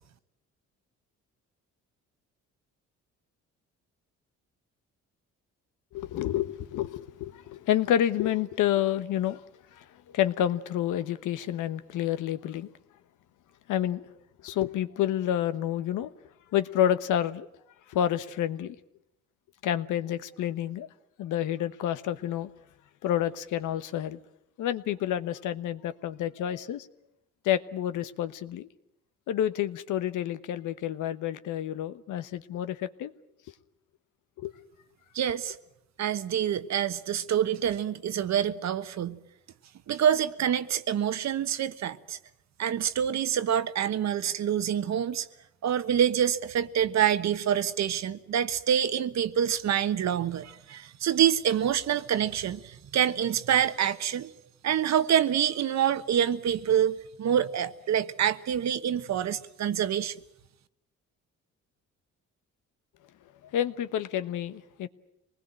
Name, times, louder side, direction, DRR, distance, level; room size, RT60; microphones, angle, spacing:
voice 1, 5.9-9.4 9.7-12.7 13.7-14.1 14.4-16.1 16.5-17.5 17.9-18.8 19.6-20.9 21.2-22.5 23.0-24.2 24.6-26.9 27.4-28.7 29.3-33.1 34.4-34.5 63.4-64.9, left 11 dB, 85° left, 1.2 m, -29 dB
voice 2, 35.1-35.6 36.0-39.2 39.9-42.2 42.6-45.3 45.6-54.3 54.6-60.1, right 9 dB, 60° right, 1.3 m, -26 dB
25.5 x 20.0 x 8.9 m
cardioid pair, 90°, 30 cm